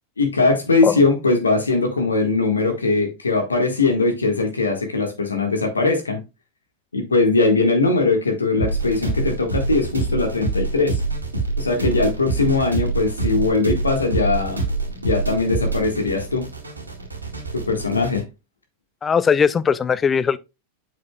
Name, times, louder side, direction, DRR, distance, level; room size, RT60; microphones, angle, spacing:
voice 1, 0.2-6.2 6.9-11.0 11.6-14.6 15.0-16.4 17.7-18.2, left 3 dB, 75° left, 1.5 m, -20 dB
sound 1, 8.6-18.2, right 3 dB, 80° right, 1.9 m, -26 dB
voice 2, 19.0-20.4, left 6 dB, 20° left, 0.4 m, -19 dB
7.6 x 5.9 x 2.2 m
figure-of-eight pair, 90°, 0 cm